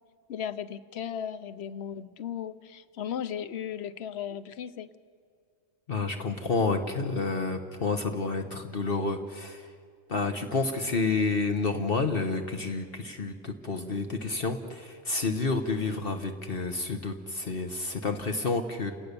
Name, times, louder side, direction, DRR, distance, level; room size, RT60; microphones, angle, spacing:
voice 1, 0.3-4.9, left 9 dB, 70° left, 14 dB, 1.1 m, -36 dB
voice 2, 5.9-9.7 10.1-18.9, left 3 dB, 55° left, 6 dB, 1.4 m, -29 dB
29.5 x 18.0 x 6.9 m, 2.1 s
omnidirectional pair, 1.2 m